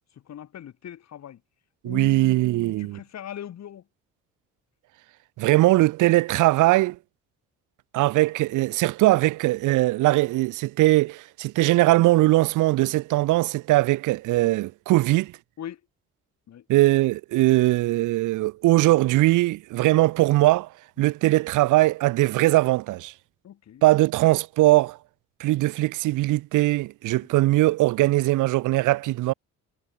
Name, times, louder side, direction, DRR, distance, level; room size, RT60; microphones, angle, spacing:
voice 1, 0.1-1.4 1.8-3.8 15.6-15.8 16.5-16.6 21.0-21.1 23.4-23.8, left 10 dB, 60° left, 2.3 m, -40 dB
voice 2, 1.8-3.0 5.4-7.0 7.9-15.3 16.7-20.7 21.0-23.1 23.8-25.0 25.4-29.3, right 18 dB, 90° right, 0.8 m, -20 dB
cardioid pair, 90°, 30 cm